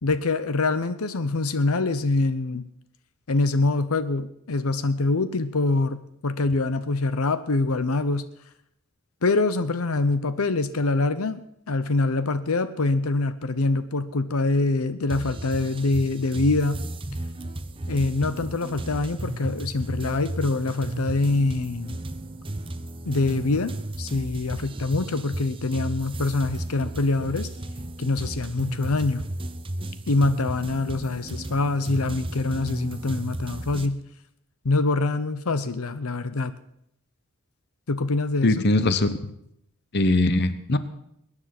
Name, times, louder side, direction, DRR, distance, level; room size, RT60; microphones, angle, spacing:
voice 1, 0.0-2.7 3.3-8.3 9.2-16.8 17.9-22.0 23.1-23.7 24.0-27.5 28.0-29.3 30.1-34.0 34.6-36.5 37.9-38.6, left 3 dB, 75° left, 13 dB, 0.8 m, -25 dB
sound 1, 15.1-33.9, right 1 dB, 25° right, 0.8 m, -34 dB
voice 2, 38.4-39.1 39.9-40.8, left 2 dB, 50° left, 13 dB, 0.9 m, -21 dB
21.5 x 9.9 x 6.0 m, 0.75 s
head